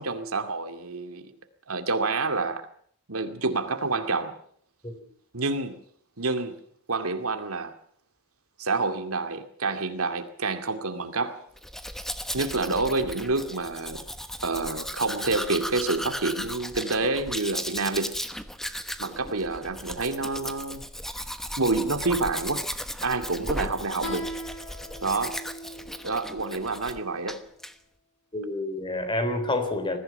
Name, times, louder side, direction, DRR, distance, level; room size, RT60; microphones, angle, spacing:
voice 1, 0.0-1.3 1.7-2.6 3.1-4.3 5.3-5.8 6.2-6.6 6.9-7.7 8.6-11.4 12.3-14.0 14.4-18.1 19.0-20.9 21.6-22.6 23.0-24.3 25.0-25.4 26.0-27.4, right 3 dB, 85° right, 8 dB, 2.4 m, -28 dB
Domestic sounds home sounds, 11.6-27.0 27.3-27.7, equal, ahead, 1.1 m, -36 dB
Guitar, 24.0-27.3, equal, 75° left, 7.1 m, -40 dB
voice 2, 28.3-30.0, left 2 dB, 25° left, 9 dB, 3.4 m, -28 dB
21.0 x 15.5 x 9.2 m, 0.63 s
head